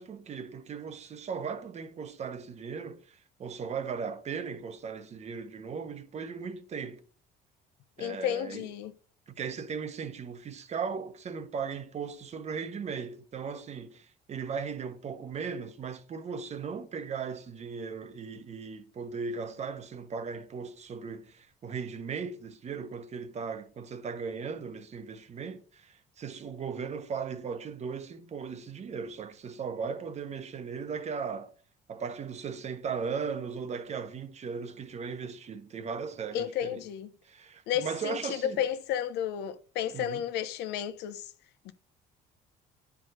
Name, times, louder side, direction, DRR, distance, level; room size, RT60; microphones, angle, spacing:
voice 1, 0.0-7.0 8.0-8.7 9.3-31.5 31.9-36.8 37.2-38.6 39.9-40.2, right 6 dB, 40° right, 1.0 m, -37 dB
voice 2, 8.0-8.9 36.3-37.1 37.7-41.3 41.6-41.7, left 10 dB, 85° left, 0.8 m, -32 dB
10.0 x 4.8 x 5.0 m
cardioid pair, 110°, 17 cm